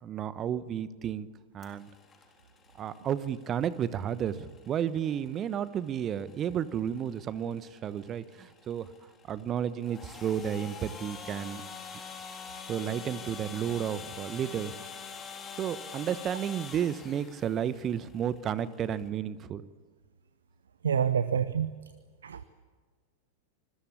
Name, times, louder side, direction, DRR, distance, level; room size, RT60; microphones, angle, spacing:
voice 1, 0.0-1.3 1.5-1.9 2.8-8.9 9.3-11.6 12.7-14.7 15.6-19.6, right 9 dB, 30° right, 16 dB, 1.2 m, -32 dB
sound 1, 1.6-19.1, left 6 dB, 20° left, 3.9 m, -46 dB
voice 2, 20.8-21.7 22.2-22.4, right 8 dB, 70° right, 14 dB, 1.0 m, -27 dB
26.0 x 21.5 x 8.5 m, 1.5 s
figure-of-eight pair, 90°, 0 cm